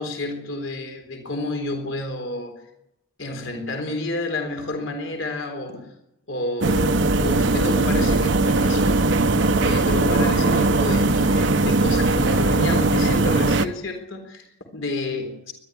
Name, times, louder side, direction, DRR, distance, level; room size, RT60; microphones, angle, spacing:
voice 1, 0.0-2.6 3.2-5.9 6.3-9.1 9.6-15.5, left 2 dB, 80° left, 4 dB, 3.9 m, -30 dB
sound 1, 6.6-13.7, right 2 dB, 70° right, 1.0 m, -19 dB
21.0 x 12.5 x 9.9 m, 0.84 s
head